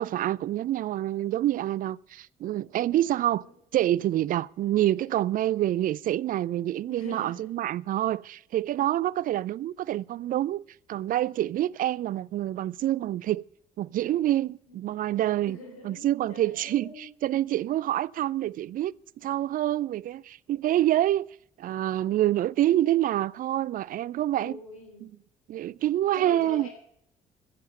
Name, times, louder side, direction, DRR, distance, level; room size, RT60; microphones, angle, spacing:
voice 1, 0.0-3.4 3.7-10.6 10.9-13.4 13.8-15.6 15.8-21.3 21.6-24.6 25.0-25.1 25.5-26.7, right 13 dB, 50° right, 0.4 m, -27 dB
voice 2, 6.9-7.5 14.7-15.0 15.4-17.1 24.4-25.1 26.1-26.7, left 2 dB, 90° left, 3.1 m, -44 dB
14.0 x 7.7 x 9.0 m
hypercardioid pair, 50°, 18 cm